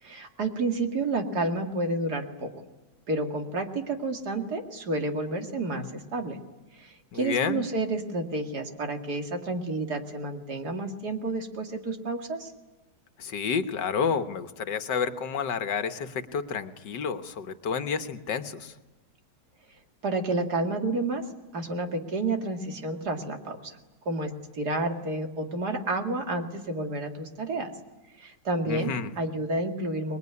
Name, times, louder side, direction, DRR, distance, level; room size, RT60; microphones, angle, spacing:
voice 1, 0.0-2.5 3.1-6.4 6.8-12.5 20.0-21.2 21.5-23.8 24.1-27.7 28.2-30.2, right 2 dB, 60° right, 4 dB, 2.7 m, -30 dB
voice 2, 7.1-7.7 13.2-18.7 28.6-29.1, left 6 dB, 75° left, 9 dB, 1.8 m, -30 dB
26.0 x 21.0 x 9.7 m, 1.1 s
omnidirectional pair, 1.9 m